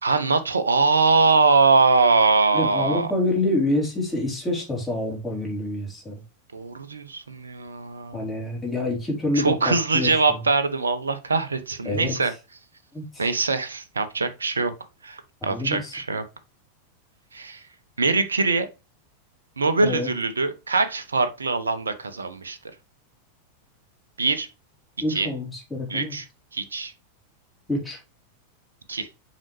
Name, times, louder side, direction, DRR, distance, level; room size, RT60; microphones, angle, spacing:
voice 1, 0.0-3.1 6.5-8.2 9.3-12.3 13.2-14.7 15.0-16.2 17.3-17.6 18.0-18.7 19.6-22.6 24.2-24.5 25.1-25.3 25.9-26.3 26.5-26.9 28.9-29.1, right 4 dB, 75° right, 0.8 m, -22 dB
voice 2, 2.5-6.2 8.1-10.4 11.8-12.3 12.9-13.3 15.4-15.9 19.8-20.1 25.0-26.1 27.7-28.0, left 1 dB, 10° left, 3.8 m, -27 dB
7.5 x 5.0 x 3.2 m
figure-of-eight pair, 90°, 0 cm